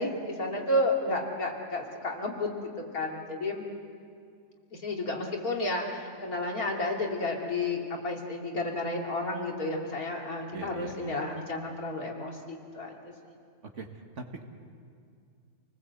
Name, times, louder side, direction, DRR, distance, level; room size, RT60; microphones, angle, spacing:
voice 1, 0.0-2.5 2.8-3.6 4.7-13.0, left 2 dB, 65° left, 0 dB, 3.1 m, -31 dB
voice 2, 10.5-11.2 13.7-13.9 14.2-14.4, right 4 dB, 50° right, 4 dB, 1.9 m, -41 dB
28.5 x 19.5 x 8.1 m, 2.2 s
omnidirectional pair, 1.6 m